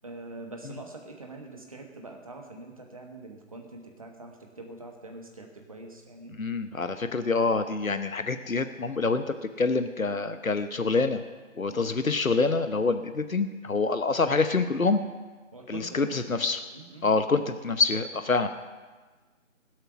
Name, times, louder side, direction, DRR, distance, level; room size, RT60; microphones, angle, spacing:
voice 1, 0.0-6.4 11.7-12.0 15.5-16.0 16.7-17.0, right 2 dB, 25° right, 3 dB, 1.3 m, -44 dB
voice 2, 6.4-9.2 9.6-11.2 11.6-15.0 15.7-16.6 17.0-18.5, left 4 dB, 80° left, 9 dB, 1.0 m, -26 dB
21.0 x 8.0 x 6.1 m, 1.3 s
figure-of-eight pair, 160°, 40 cm